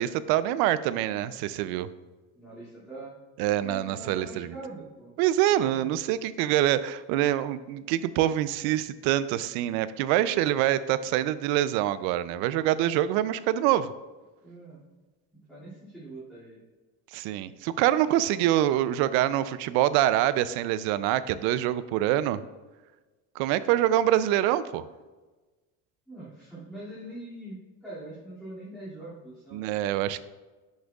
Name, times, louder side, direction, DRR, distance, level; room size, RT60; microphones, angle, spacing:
voice 1, 0.0-1.9 3.4-4.5 5.2-13.9 17.1-22.4 23.4-24.9 29.5-30.2, right 13 dB, 85° right, 15 dB, 0.5 m, -25 dB
voice 2, 2.3-3.1 3.6-5.1 14.4-14.8 15.5-16.6 26.1-29.8, right 2 dB, ahead, -12 dB, 2.4 m, -43 dB
10.5 x 6.4 x 2.4 m, 1.2 s
cardioid pair, 155°, 36 cm